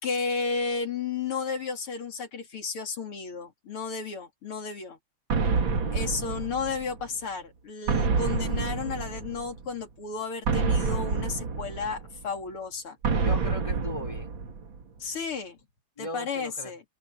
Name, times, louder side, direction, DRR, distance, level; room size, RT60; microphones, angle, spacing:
voice 1, 0.0-5.0 5.9-13.0 15.0-15.6 16.0-16.8, left 5 dB, 80° left, 3.8 m, -33 dB
sound 1, 5.3-7.1 7.9-9.6 10.5-12.2 13.0-14.8, right 4 dB, 60° right, 2.6 m, -28 dB
voice 2, 5.8-6.2 13.2-14.3 16.0-16.7, left 1 dB, 15° left, 2.8 m, -38 dB
omnidirectional pair, 2.4 m